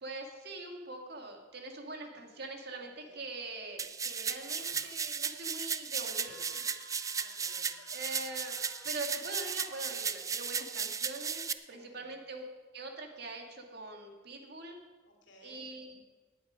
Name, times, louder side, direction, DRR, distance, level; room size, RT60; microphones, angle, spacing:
voice 1, 0.0-6.7 7.9-8.6 8.8-12.4 12.7-14.8 15.4-16.0, right 2 dB, 60° right, 3 dB, 2.1 m, -43 dB
voice 2, 2.7-3.3 7.1-7.8 11.7-12.1 15.0-15.6, left 1 dB, 80° left, 1 dB, 3.5 m, -60 dB
sound 1, 3.8-11.5, right 6 dB, 15° right, 0.4 m, -35 dB
Hiss, 4.6-10.2, right 5 dB, 90° right, 2.7 m, -61 dB
Screaming, 5.9-10.3, left 1 dB, 15° left, 2.2 m, -57 dB
17.5 x 9.9 x 5.1 m, 1.3 s
head